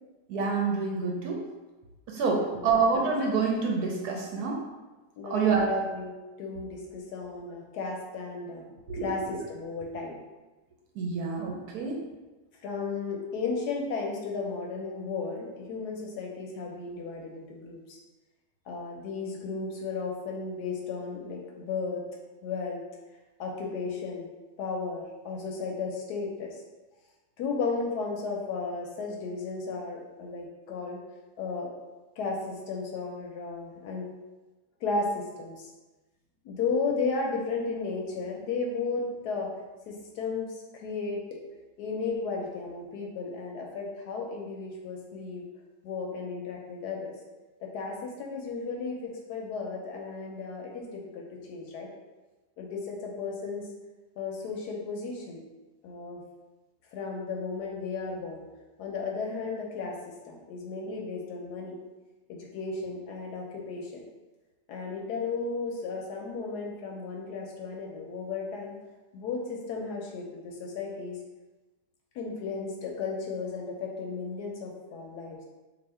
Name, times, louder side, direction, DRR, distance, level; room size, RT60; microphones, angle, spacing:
voice 1, 0.3-1.4 2.1-4.6 5.2-5.7 8.9-9.4 11.0-12.0, right 4 dB, 70° right, -1 dB, 1.0 m, -27 dB
voice 2, 2.4-2.8 5.2-6.1 6.4-8.6 9.0-10.2 12.6-18.0 18.7-22.0 22.4-22.8 23.4-24.3 24.6-26.5 27.4-31.0 31.4-31.7 32.2-34.1 34.8-35.7 36.4-39.5 39.9-41.2 41.8-45.4 45.8-47.1 47.6-51.9 52.6-53.6 54.2-55.4 55.8-56.2 56.9-58.4 58.8-60.0 60.2-61.8 62.3-63.9 64.7-68.8 69.1-71.2 72.1-75.4, left 4 dB, 75° left, 0 dB, 1.0 m, -34 dB
2.7 x 2.6 x 4.2 m, 1.2 s
omnidirectional pair, 1.9 m